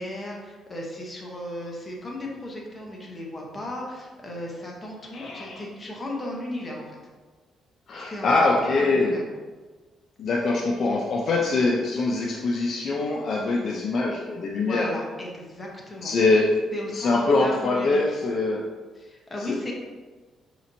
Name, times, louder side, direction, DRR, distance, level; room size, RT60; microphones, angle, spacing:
voice 1, 0.0-6.9 8.1-8.3 8.7-9.2 14.6-16.1 16.7-18.2 18.9-19.7, left 1 dB, 25° left, -2 dB, 1.0 m, -36 dB
voice 2, 5.1-5.6 7.9-9.2 10.2-14.9 16.0-16.6 16.9-18.7 19.5-19.6, left 3 dB, 55° left, -1 dB, 0.4 m, -23 dB
4.9 x 2.9 x 2.7 m, 1.3 s
cardioid pair, 90°, 0 cm